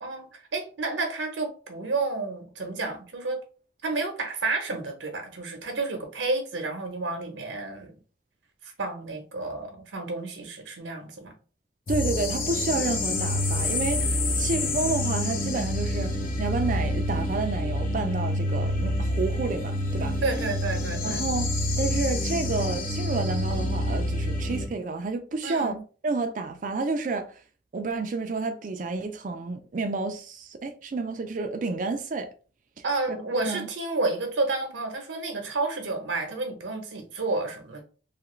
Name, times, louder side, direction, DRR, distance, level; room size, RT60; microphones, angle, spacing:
voice 1, 0.0-3.4 3.8-7.9 8.6-11.3 20.2-21.2 25.4-25.8 32.8-37.8, right 3 dB, 90° right, 0.8 m, -30 dB
sound 1, 11.9-24.7, left 1 dB, 45° left, 0.5 m, -27 dB
voice 2, 11.9-16.1 16.4-20.2 21.0-21.5 21.8-25.7 26.0-27.3 27.7-32.3 33.1-33.2 33.5-33.7, right 3 dB, 45° right, 0.3 m, -30 dB
2.9 x 2.4 x 3.0 m
head